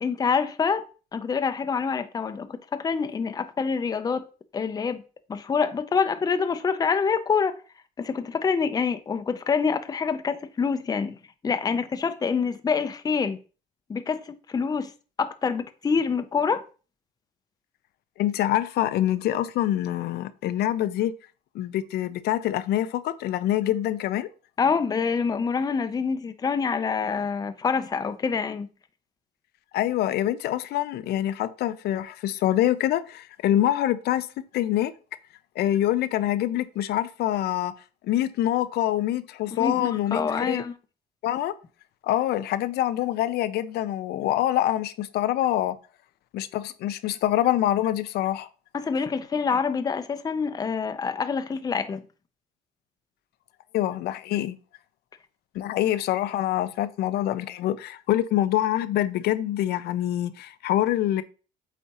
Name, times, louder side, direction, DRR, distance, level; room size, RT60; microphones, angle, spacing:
voice 1, 0.0-0.8 1.1-4.2 4.5-5.0 5.3-7.6 8.0-11.2 11.4-13.4 13.9-14.9 15.2-16.6 24.6-28.7 39.6-40.7 48.7-52.0, left 5 dB, 20° left, 0.5 m, -26 dB
voice 2, 18.2-21.1 21.5-24.3 29.7-34.3 34.5-34.9 35.6-37.7 38.0-40.6 41.2-41.5 42.0-45.8 46.3-48.5 49.5-49.6 53.7-54.6 55.5-61.2, left 13 dB, 70° left, 0.6 m, -25 dB
8.2 x 4.2 x 2.9 m
cardioid pair, 110°, 17 cm